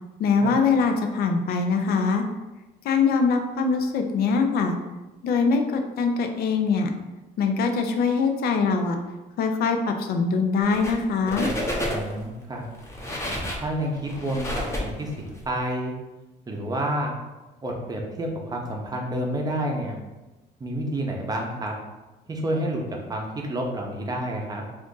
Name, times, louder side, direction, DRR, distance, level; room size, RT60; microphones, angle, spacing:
voice 1, 0.2-2.3 2.8-4.8 5.2-6.9 7.4-9.0 9.4-11.5, left 4 dB, 65° left, 5 dB, 0.5 m, -23 dB
sound 1, 10.6-11.0 11.3-12.2 12.7-15.4, left 1 dB, 15° left, 0.7 m, -30 dB
voice 2, 11.8-12.6 13.6-14.5 14.8-15.9 16.5-17.1 17.6-20.0 20.6-21.7 22.3-24.6, right 1 dB, 20° right, 0 dB, 0.7 m, -29 dB
2.5 x 2.5 x 3.7 m, 1.1 s
cardioid pair, 110°, 17 cm